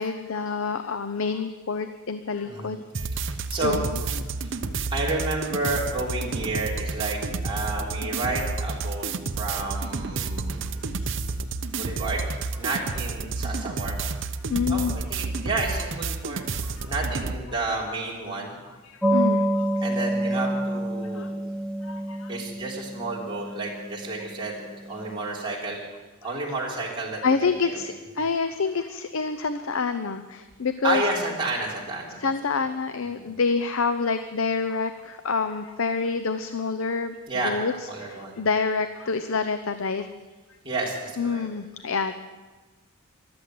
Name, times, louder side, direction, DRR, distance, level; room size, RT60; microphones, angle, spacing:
voice 1, 0.0-2.8 3.5-4.0 10.8-11.2 14.5-14.9 16.6-16.9 18.8-19.7 21.1-21.3 21.8-22.3 26.2-26.4 27.2-31.0 32.2-37.2 37.4-40.1 41.2-42.1, left 4 dB, 70° left, 9 dB, 0.7 m, -27 dB
sound 1, 2.9-17.4, right 3 dB, 60° right, 0.8 m, -30 dB
voice 2, 3.3-4.2 4.4-4.5 4.9-9.1 9.4-11.2 11.7-12.2 12.5-14.0 14.7-16.4 16.8-18.5 19.8-21.3 22.3-24.6 24.8-25.9 26.2-28.2 30.8-32.3 33.1-33.3 37.3-37.6 37.8-38.4 40.6-41.4, right 2 dB, 25° right, -4 dB, 3.6 m, -31 dB
sound 2, 19.0-25.2, right 1 dB, 5° left, 0.7 m, -28 dB
14.5 x 12.5 x 7.8 m, 1.3 s
head